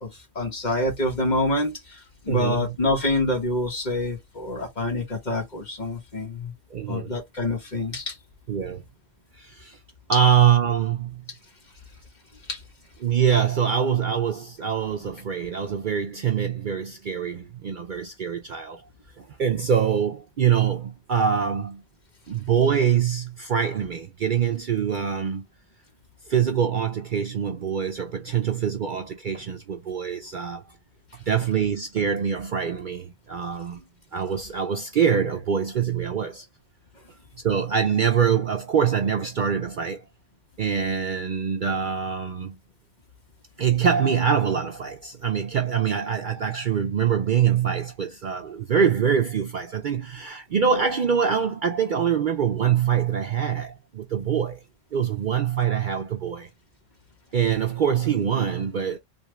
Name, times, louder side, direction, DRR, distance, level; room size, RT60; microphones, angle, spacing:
voice 1, 0.0-6.5 6.9-8.2 12.5-12.6, left 2 dB, 40° left, 1.5 m, -27 dB
voice 2, 2.3-2.8 6.7-7.1 8.5-8.8 9.4-9.8 10.1-11.3 13.0-18.8 19.2-21.8 22.3-25.4 26.3-30.6 31.3-33.8 34.1-36.5 37.4-40.0 40.6-42.6 43.6-54.6 54.9-56.5 57.3-59.0, right 8 dB, 55° right, 0.6 m, -24 dB
3.5 x 2.4 x 3.1 m
omnidirectional pair, 1.2 m